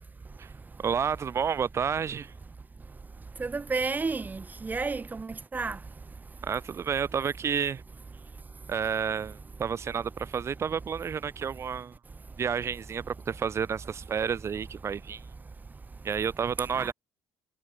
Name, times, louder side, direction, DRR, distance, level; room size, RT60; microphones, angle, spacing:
voice 1, 0.8-2.3 6.4-7.8 8.7-12.0 12.4-15.2 16.0-16.9, right 7 dB, 40° right, 2.8 m, -30 dB
voice 2, 3.4-5.8 16.8-16.9, right 4 dB, 25° right, 5.7 m, -31 dB
supercardioid pair, 75°, 7 cm